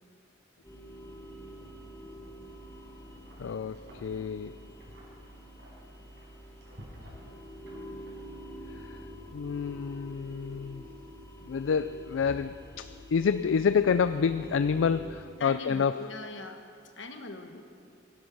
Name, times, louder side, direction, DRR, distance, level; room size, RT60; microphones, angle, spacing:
sound 1, 0.6-15.2, equal, 15° left, 1.8 m, -47 dB
Wind, 2.3-8.7, equal, 65° right, 5.0 m, -55 dB
voice 1, 3.4-4.6 8.7-9.0 9.3-10.8 11.4-16.0, left 6 dB, 85° left, 12 dB, 0.4 m, -28 dB
voice 2, 15.4-16.6 17.0-17.6, left 2 dB, 70° left, 6 dB, 1.4 m, -41 dB
18.0 x 11.5 x 6.1 m, 2.4 s
head